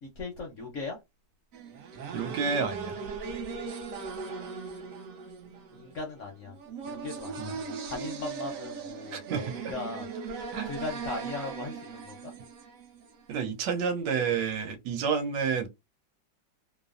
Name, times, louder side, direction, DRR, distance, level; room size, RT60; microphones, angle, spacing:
voice 1, 0.0-1.0 5.7-6.6 6.9-9.2 9.6-10.1 10.6-12.3, left 3 dB, 65° left, 0.7 m, -38 dB
sound 1, 1.5-13.4, right 5 dB, 65° right, 0.9 m, -39 dB
voice 2, 2.1-3.0 7.4-7.5 9.1-9.5 10.5-10.7 13.3-15.7, right 6 dB, 80° right, 1.3 m, -29 dB
3.0 x 2.0 x 2.4 m
omnidirectional pair, 1.9 m